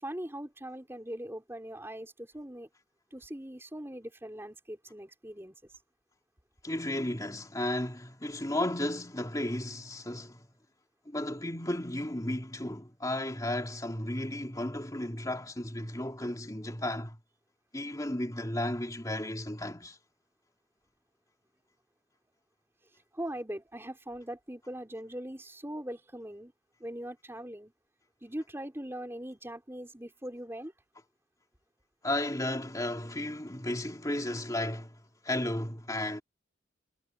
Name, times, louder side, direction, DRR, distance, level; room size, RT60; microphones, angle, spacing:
voice 1, 0.0-2.7 3.1-5.5 23.1-26.5 26.8-27.7 28.2-30.7, right 1 dB, 10° right, 3.8 m, -41 dB
voice 2, 6.6-10.4 11.1-17.2 17.7-20.0 32.0-36.2, left 1 dB, 20° left, 2.9 m, -34 dB
head